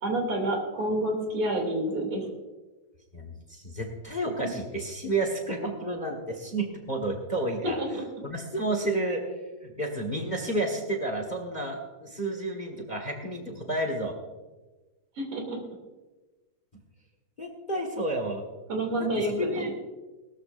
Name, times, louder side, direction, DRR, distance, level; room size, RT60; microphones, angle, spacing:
voice 1, 0.0-2.3 7.6-8.0 15.2-15.6 18.7-19.7, right 1 dB, 45° right, 1 dB, 3.7 m, -28 dB
voice 2, 3.1-7.8 8.2-9.2 9.6-14.1 17.4-18.4 19.0-19.7, right 1 dB, 30° left, 3 dB, 0.8 m, -31 dB
20.0 x 13.5 x 2.6 m, 1.2 s
omnidirectional pair, 3.5 m